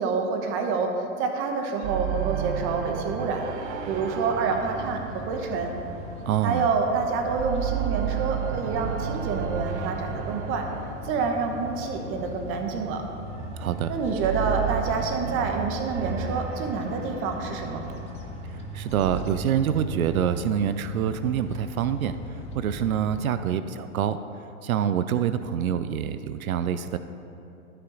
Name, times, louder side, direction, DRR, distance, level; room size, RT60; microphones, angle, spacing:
voice 1, 0.0-3.5 3.9-5.7 6.4-10.7 11.0-13.0 13.9-17.8, right 4 dB, 30° right, 4 dB, 1.0 m, -27 dB
sound 1, 1.8-6.8 7.1-12.5 13.2-19.2, right 9 dB, 55° right, 0.9 m, -33 dB
sound 2, 3.7-23.2, left 1 dB, 15° left, 0.6 m, -39 dB
voice 2, 6.3-6.7 13.5-13.9 18.7-22.2 22.5-24.2 24.6-27.0, right 9 dB, 90° right, 11 dB, 0.5 m, -26 dB
13.0 x 5.7 x 3.9 m, 2.7 s
hypercardioid pair, 130°, 41 cm